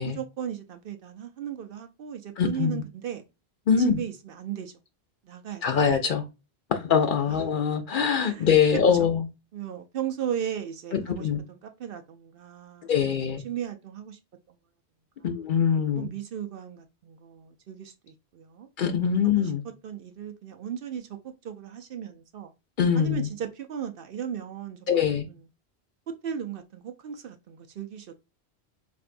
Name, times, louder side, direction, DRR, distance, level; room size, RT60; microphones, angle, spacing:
voice 1, 0.0-3.2 3.8-4.7 5.2-5.6 7.3-7.5 8.2-8.5 9.0-9.1 9.5-13.2 13.4-14.2 14.5-14.6 16.0-18.7 19.2-19.5 19.8-22.5 22.9-25.4 26.1-28.1, right 9 dB, 65° right, 0.7 m, -36 dB
voice 2, 2.4-2.8 3.7-4.0 5.6-6.2 6.7-9.2 10.9-11.4 12.8-13.4 15.2-16.1 18.8-19.6 22.8-23.3 24.9-25.3, left 7 dB, 60° left, 0.7 m, -23 dB
4.5 x 2.6 x 2.5 m
omnidirectional pair, 1.1 m